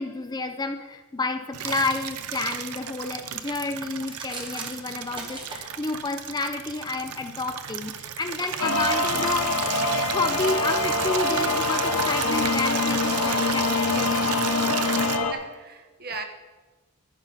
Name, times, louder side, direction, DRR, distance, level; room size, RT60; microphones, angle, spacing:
voice 1, 0.0-9.7 10.1-14.2, left 3 dB, 20° left, 8 dB, 0.5 m, -30 dB
Water tap faucet / Liquid, 1.5-15.2, right 8 dB, 90° right, 0.6 m, -33 dB
sound 1, 4.0-5.6, right 2 dB, 20° right, 1.7 m, -39 dB
sound 2, 8.6-15.3, left 3 dB, 90° left, 0.9 m, -25 dB
voice 2, 15.0-16.2, right 4 dB, 45° right, 6 dB, 1.0 m, -38 dB
11.0 x 10.5 x 4.0 m, 1.3 s
head